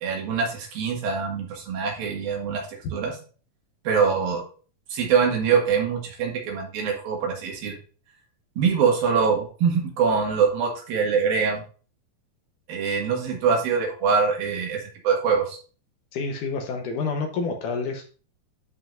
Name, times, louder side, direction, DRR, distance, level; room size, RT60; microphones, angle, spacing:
voice 1, 0.0-2.7 2.9-3.1 3.9-4.4 4.9-7.8 8.6-11.6 12.7-15.6, right 6 dB, 75° right, 0 dB, 3.7 m, -24 dB
voice 2, 16.1-18.1, left 4 dB, 70° left, 4 dB, 2.3 m, -28 dB
11.5 x 5.1 x 2.6 m, 0.37 s
omnidirectional pair, 4.2 m